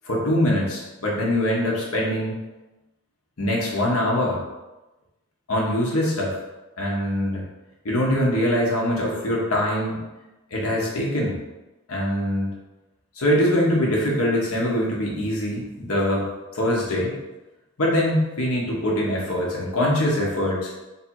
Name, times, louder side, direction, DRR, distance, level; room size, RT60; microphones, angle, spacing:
voice 1, 0.0-2.4 3.4-4.4 5.5-6.4 6.8-7.4 7.8-10.0 10.5-11.4 11.9-12.5 13.2-17.1 17.8-20.7, left 1 dB, 85° left, -3 dB, 1.1 m, -23 dB
3.3 x 2.8 x 4.5 m, 1.0 s
head